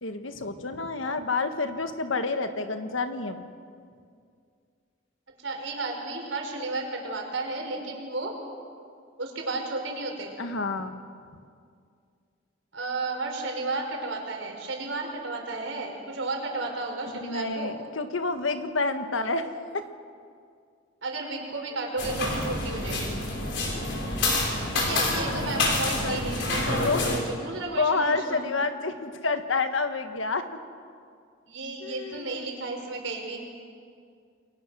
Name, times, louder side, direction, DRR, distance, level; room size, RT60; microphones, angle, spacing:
voice 1, 0.0-3.5 10.4-11.0 17.2-19.9 26.0-26.2 26.8-27.2 27.8-30.5 31.8-32.5, left 3 dB, 90° left, 8 dB, 1.6 m, -29 dB
voice 2, 5.4-8.3 9.2-10.3 12.7-17.7 21.0-23.2 24.7-27.1 27.4-28.4 31.5-33.4, right 3 dB, 75° right, 1 dB, 5.0 m, -33 dB
sound 1, 22.0-27.2, left 2 dB, 65° left, 5.0 m, -27 dB
29.0 x 22.0 x 6.4 m, 2.2 s
head